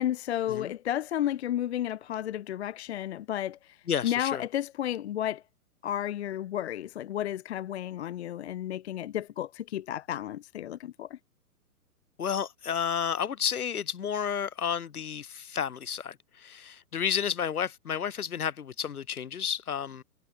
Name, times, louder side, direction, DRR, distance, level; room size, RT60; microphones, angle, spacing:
voice 1, 0.0-3.8 4.0-5.4 5.8-11.2, left 11 dB, 45° left, 0.6 m, -32 dB
voice 2, 3.9-4.4 12.2-20.0, left 8 dB, 70° left, 2.0 m, -31 dB
figure-of-eight pair, 125°, 46 cm